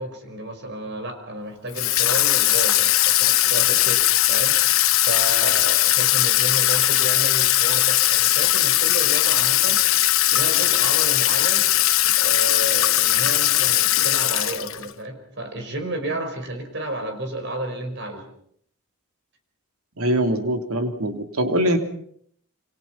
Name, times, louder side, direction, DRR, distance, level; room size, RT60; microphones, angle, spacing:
voice 1, 0.0-9.9 10.3-11.7 12.2-18.3, right 1 dB, 55° right, 6 dB, 5.4 m, -32 dB
Water tap faucet / Sink (filling or washing), 1.8-14.9, left 14 dB, 65° left, 1.2 m, -19 dB
voice 2, 20.0-21.8, right 1 dB, 75° right, 5 dB, 3.2 m, -22 dB
28.0 x 25.5 x 5.9 m, 0.66 s
head